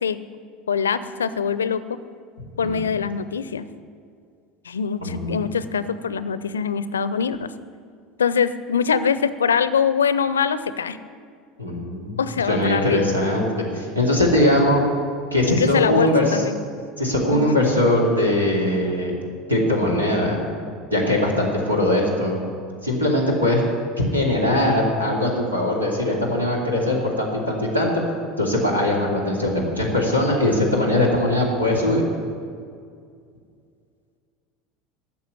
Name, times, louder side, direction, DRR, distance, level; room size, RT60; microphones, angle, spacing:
voice 1, 0.7-1.8 2.6-3.7 4.6-7.5 8.2-11.0 12.2-13.2 15.5-16.6 17.3-17.6, left 6 dB, 75° left, 14 dB, 0.5 m, -23 dB
voice 2, 5.0-5.3 11.6-12.2 12.5-13.5 13.7-14.8 15.3-16.4 17.0-19.1 19.5-20.4 20.9-22.4 22.8-23.6 24.1-27.9 28.4-32.0, left 1 dB, 90° right, -1 dB, 2.5 m, -21 dB
12.5 x 7.3 x 9.5 m, 2.2 s
figure-of-eight pair, 75°, 0 cm